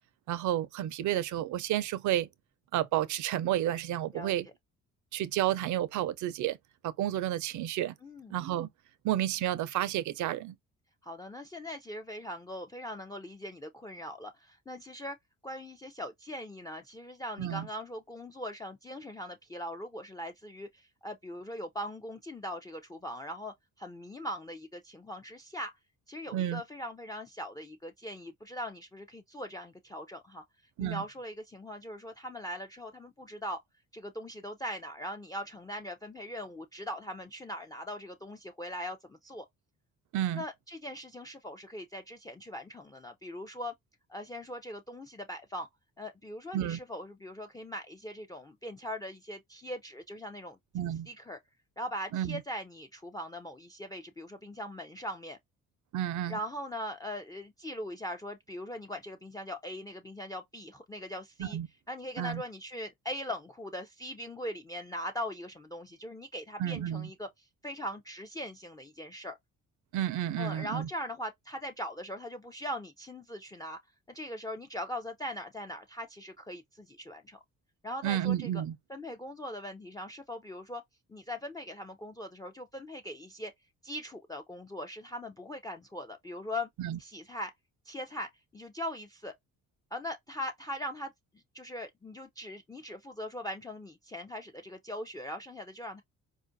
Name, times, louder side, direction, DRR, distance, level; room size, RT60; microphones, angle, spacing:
voice 1, 0.3-2.3 2.7-4.5 5.1-6.6 6.8-8.0 8.3-8.7 9.0-10.5 17.4-17.7 26.3-26.6 30.8-31.0 40.1-40.4 46.5-46.8 50.7-51.1 52.1-52.4 55.9-56.4 61.4-61.7 62.2-62.4 66.6-67.1 69.9-70.9 78.0-78.8 86.8-87.0, right 12 dB, 75° right, 0.5 m, -31 dB
voice 2, 4.1-4.5 8.0-8.4 11.0-15.2 15.4-25.7 26.1-30.4 30.8-33.6 33.9-39.5 40.4-43.7 44.1-45.7 46.0-50.6 51.1-51.4 51.8-55.4 56.3-61.6 61.9-69.4 70.4-73.8 74.1-77.4 77.8-78.6 78.9-80.8 81.1-83.5 83.8-86.7 87.0-87.5 87.9-89.3 89.9-96.0, left 1 dB, 10° left, 0.4 m, -40 dB
4.3 x 2.4 x 2.6 m
cardioid pair, 90°, 30 cm